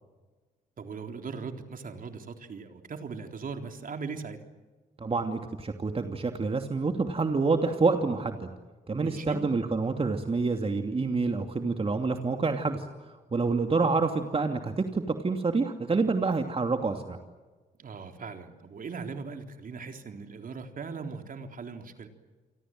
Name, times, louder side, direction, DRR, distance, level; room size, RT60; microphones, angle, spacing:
voice 1, 0.8-4.4 9.0-9.4 17.8-22.1, right 5 dB, 50° right, 5 dB, 3.7 m, -39 dB
voice 2, 5.0-8.5 8.9-17.2, right 4 dB, 30° right, 5 dB, 2.7 m, -27 dB
29.5 x 24.5 x 7.8 m, 1.3 s
supercardioid pair, 55°, 18 cm